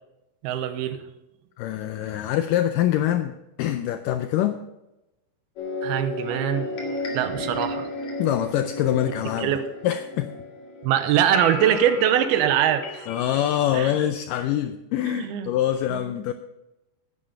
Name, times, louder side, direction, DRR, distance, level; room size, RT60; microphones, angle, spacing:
voice 1, 0.4-1.0 5.8-6.7 7.1-7.9 9.4-9.7 10.8-13.1 13.7-13.9 15.1-15.5 15.9-16.1, right 10 dB, 85° right, 10 dB, 2.7 m, -23 dB
voice 2, 1.6-4.6 8.2-9.5 9.8-10.3 13.1-16.3, left 11 dB, 90° left, 9 dB, 1.9 m, -24 dB
sound 1, 5.6-13.7, left 2 dB, 50° left, 3.1 m, -34 dB
11.5 x 9.9 x 5.3 m, 0.94 s
omnidirectional pair, 4.4 m